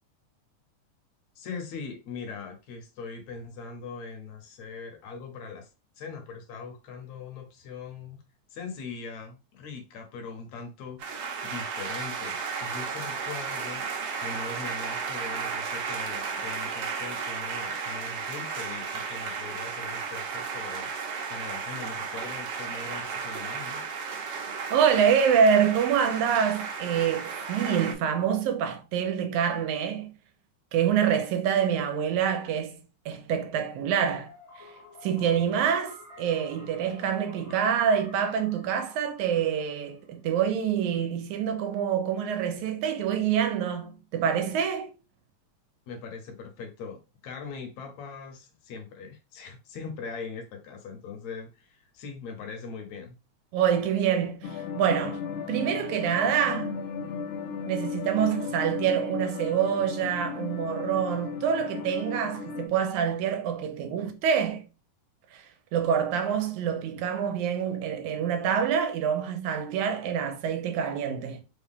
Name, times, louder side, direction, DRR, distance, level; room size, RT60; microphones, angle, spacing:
voice 1, 1.4-5.7 6.0-8.2 8.5-13.8 14.2-20.9 21.3-23.8 45.9-53.2, left 5 dB, 70° left, 2.1 m, -41 dB
sound 1, 11.0-27.9, right 5 dB, 65° right, 1.6 m, -34 dB
voice 2, 24.7-30.1 30.7-34.3 34.6-34.7 35.0-44.9 53.5-56.8 57.7-64.7 65.3-71.4, right 8 dB, 90° right, 2.0 m, -26 dB
sound 2, 34.3-40.1, left 3 dB, 40° left, 0.9 m, -50 dB
sound 3, 54.4-62.7, left 5 dB, 90° left, 1.4 m, -35 dB
5.2 x 2.2 x 3.5 m
omnidirectional pair, 3.4 m